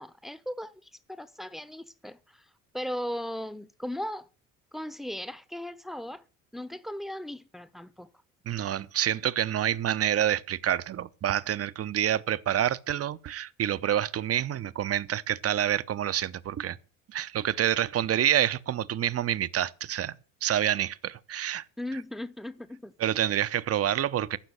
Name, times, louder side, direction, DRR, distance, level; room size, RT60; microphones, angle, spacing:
voice 1, 0.0-2.4 2.7-4.3 4.7-6.2 6.5-8.1 21.8-22.9, left 1 dB, ahead, 1.0 m, -37 dB
voice 2, 8.5-16.8 17.1-21.6 23.0-24.4, right 11 dB, 35° right, 0.8 m, -27 dB
14.5 x 6.2 x 8.2 m
hypercardioid pair, 60°, 40 cm